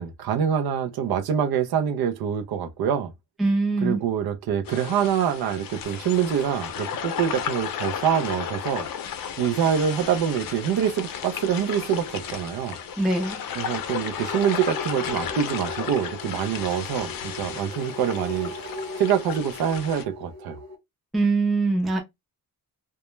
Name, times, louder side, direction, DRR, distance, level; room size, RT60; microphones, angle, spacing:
voice 1, 0.0-3.1 3.8-8.9 9.4-12.8 13.5-18.5 19.0-20.6, right 8 dB, 75° right, 0.5 m, -25 dB
voice 2, 3.4-4.0 13.0-13.4 21.1-22.0, right 3 dB, ahead, 0.4 m, -22 dB
sound 1, 4.6-20.0, left 8 dB, 65° left, 0.5 m, -34 dB
sound 2, 10.9-20.7, left 1 dB, 60° right, 1.1 m, -41 dB
2.2 x 2.0 x 3.0 m
wide cardioid pair, 150°, 37 cm